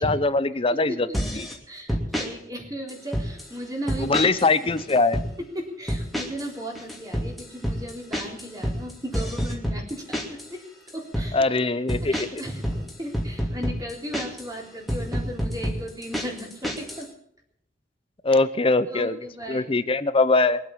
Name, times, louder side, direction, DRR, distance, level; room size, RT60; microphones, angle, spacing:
voice 1, 0.0-1.1 1.3-1.5 4.0-5.2 11.3-12.4 18.2-19.2 19.5-20.6, left 3 dB, 30° left, 14 dB, 0.7 m, -22 dB
voice 2, 0.7-4.7 5.4-10.6 10.9-11.4 12.1-17.1 18.3-18.4 18.9-19.7, equal, 20° right, 0 dB, 3.7 m, -36 dB
sound 1, 1.1-1.6 1.9-2.3 2.9-3.5 3.9-4.5 4.8-5.3 5.9-6.5 6.7-10.5 10.9-11.3 11.9-14.5 14.9-17.0, equal, ahead, 2.6 m, -28 dB
22.5 x 8.2 x 7.1 m, 0.68 s
head